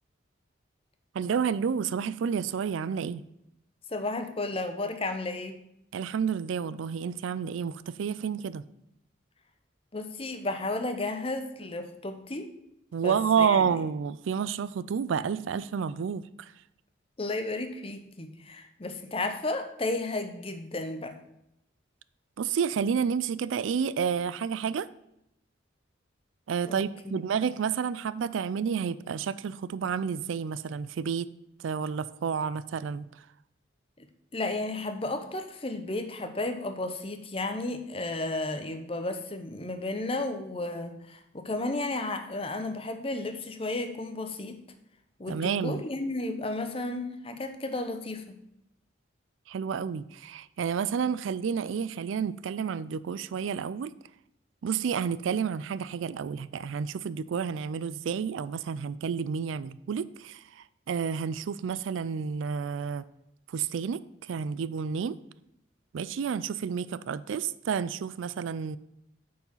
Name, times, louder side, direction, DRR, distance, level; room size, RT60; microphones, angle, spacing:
voice 1, 1.1-3.2 5.9-8.6 12.9-16.5 22.4-24.9 26.5-31.3 31.6-33.1 45.3-45.8 49.5-53.9 54.6-63.1 63.5-65.2 65.9-68.8, right 6 dB, 80° right, 0.4 m, -30 dB
voice 2, 3.9-5.6 9.9-12.5 13.0-13.7 17.2-21.2 26.7-26.8 27.0-27.3 34.0-34.1 34.3-44.6 45.2-48.4, left 2 dB, 30° left, 0.8 m, -33 dB
9.0 x 4.8 x 5.5 m
head